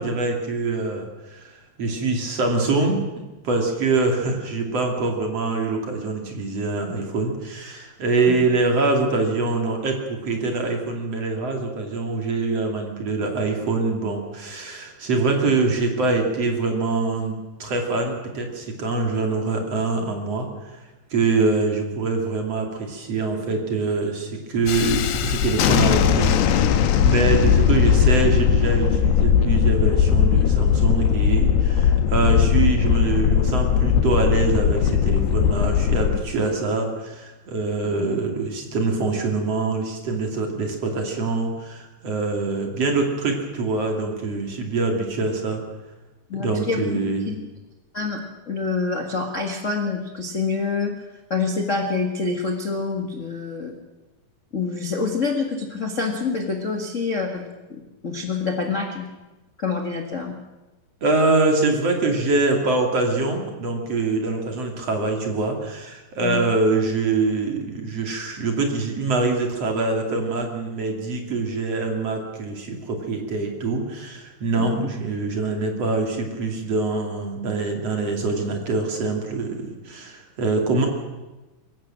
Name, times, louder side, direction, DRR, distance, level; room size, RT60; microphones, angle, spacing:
voice 1, 0.0-3.0 3.4-17.3 17.6-20.8 21.1-45.6 46.3-47.3 61.0-80.9, right 3 dB, 40° right, 3 dB, 3.4 m, -24 dB
Thunderstorm, 24.7-36.2, left 8 dB, 85° left, 3.2 m, -19 dB
voice 2, 37.8-38.1 46.3-47.0 47.2-47.4 47.9-48.2 48.5-50.9 51.3-53.7 54.5-57.4 57.7-59.0 59.6-60.3 66.2-66.4 74.6-74.9, left 4 dB, 50° left, 2 dB, 0.8 m, -26 dB
24.0 x 15.5 x 7.6 m, 1.1 s
omnidirectional pair, 4.6 m